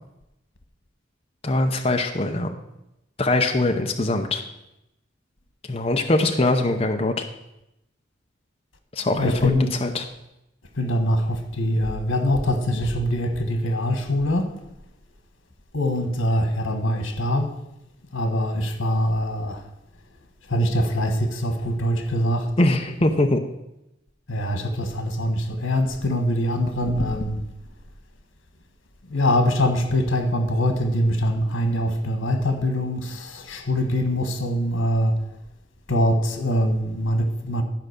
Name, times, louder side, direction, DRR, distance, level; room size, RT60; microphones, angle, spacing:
voice 1, 1.4-2.5 3.2-4.4 5.7-7.2 9.0-10.0 22.6-23.4, left 2 dB, 30° left, 0.7 m, -22 dB
voice 2, 9.2-9.7 10.7-14.5 15.7-17.5 18.1-19.6 20.5-22.5 24.3-27.4 29.1-35.1 35.9-37.6, equal, 90° left, 1.4 m, -23 dB
12.5 x 5.0 x 6.6 m
head